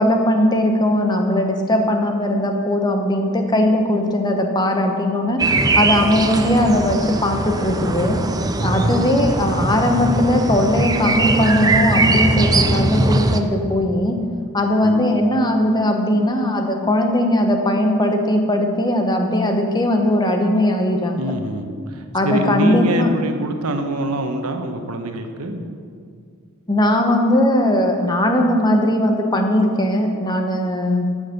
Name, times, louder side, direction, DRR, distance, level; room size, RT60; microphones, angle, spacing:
voice 1, 0.0-5.4 5.8-8.2 8.6-14.2 14.5-21.3 22.1-23.1 26.7-31.1, left 1 dB, 20° left, 4 dB, 1.0 m, -19 dB
sound 1, 5.4-13.4, right 2 dB, 15° right, 0.4 m, -20 dB
voice 2, 8.3-8.7 14.8-15.0 21.2-25.6, right 1 dB, 90° right, 6 dB, 1.1 m, -25 dB
12.0 x 6.4 x 6.7 m, 2.2 s
head